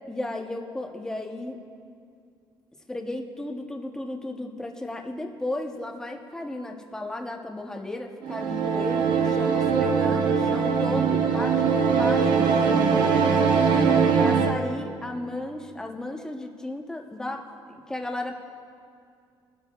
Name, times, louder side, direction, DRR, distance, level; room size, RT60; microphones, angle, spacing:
voice 1, 0.1-1.6 2.9-13.6 14.2-17.4 17.7-18.4, left 1 dB, 5° left, 2 dB, 0.8 m, -34 dB
sound 1, 8.2-14.6, right 6 dB, 65° right, 0.9 m, -21 dB
22.0 x 12.5 x 2.3 m, 2.3 s
cardioid pair, 160°, 9 cm